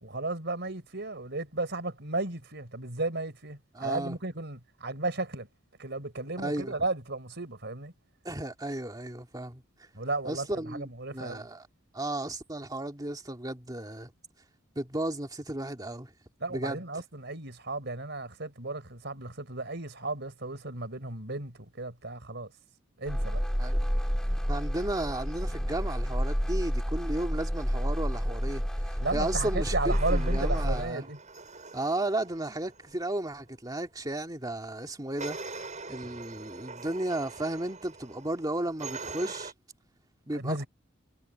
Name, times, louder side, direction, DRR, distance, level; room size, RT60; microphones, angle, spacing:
voice 1, 0.0-5.5 5.8-7.9 9.9-10.5 10.7-11.4 16.4-22.5 23.0-23.4 29.0-31.2 40.3-40.7, right 2 dB, 55° right, 4.7 m, -34 dB
voice 2, 3.7-4.2 6.4-6.8 8.2-9.6 10.2-11.7 11.9-14.1 14.8-16.1 16.5-16.8 23.6-23.9 24.5-31.1 31.7-35.4 35.9-39.5 40.3-40.6, right 1 dB, 20° right, 2.2 m, -34 dB
sound 1, 23.1-30.9, equal, 5° left, 2.0 m, -29 dB
sound 2, 29.9-33.1 35.2-39.5, right 4 dB, 35° right, 7.6 m, -43 dB
head